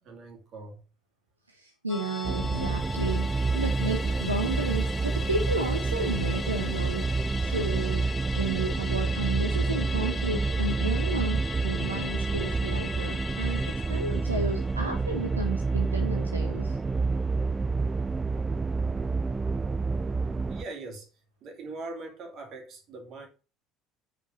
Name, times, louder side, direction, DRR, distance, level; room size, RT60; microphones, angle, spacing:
voice 1, 0.0-0.8 20.5-21.1 21.4-23.3, right 3 dB, 45° right, 2.4 m, -41 dB
voice 2, 1.5-16.8, right 2 dB, 85° right, 0.8 m, -33 dB
Musical instrument, 1.9-16.6 16.9-17.0, left 4 dB, 25° left, 0.7 m, -39 dB
sound 1, 2.2-20.7, right 4 dB, 20° right, 0.3 m, -28 dB
5.6 x 5.1 x 6.1 m
figure-of-eight pair, 60°, 0 cm